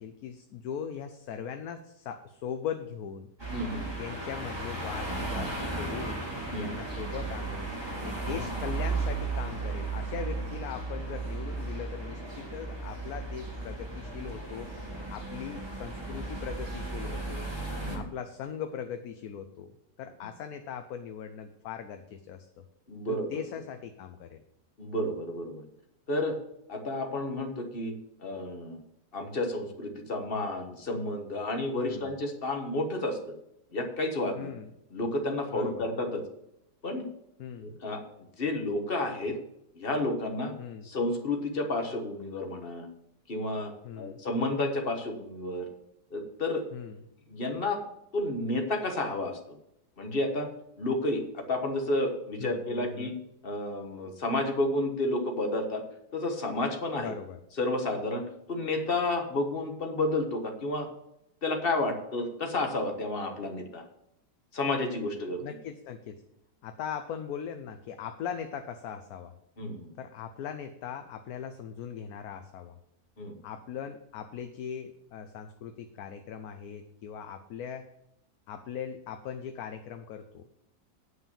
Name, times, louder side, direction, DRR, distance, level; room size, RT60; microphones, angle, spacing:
voice 1, 0.0-3.3 4.0-6.3 6.6-17.5 17.9-19.7 20.0-22.6 23.1-24.4 31.7-32.2 34.4-34.7 35.5-35.9 37.4-37.8 40.6-40.9 43.8-44.2 46.7-47.0 52.4-53.2 57.0-57.4 65.4-66.2 66.6-69.3 70.0-72.8 73.4-77.9 78.5-80.5, left 8 dB, 65° left, 7 dB, 1.1 m, -40 dB
sound 1, 3.4-18.0, right 3 dB, 15° right, 2.5 m, -35 dB
voice 2, 3.5-4.0 6.5-6.7 17.8-18.1 22.9-23.4 24.8-25.6 26.1-26.4 26.7-27.9 28.2-28.8 29.1-33.3 33.7-34.5 34.9-36.2 36.8-37.0 37.6-38.0 38.4-39.4 39.7-40.5 40.8-42.9 43.3-45.7 46.1-46.6 47.3-47.8 48.1-49.4 50.0-50.5 50.8-53.2 53.4-55.8 56.1-57.1 57.6-60.9 61.4-63.8 64.5-65.4 69.6-69.9 73.2-73.4, left 2 dB, 35° left, 4 dB, 1.4 m, -31 dB
9.6 x 5.7 x 7.1 m, 0.82 s
omnidirectional pair, 1.8 m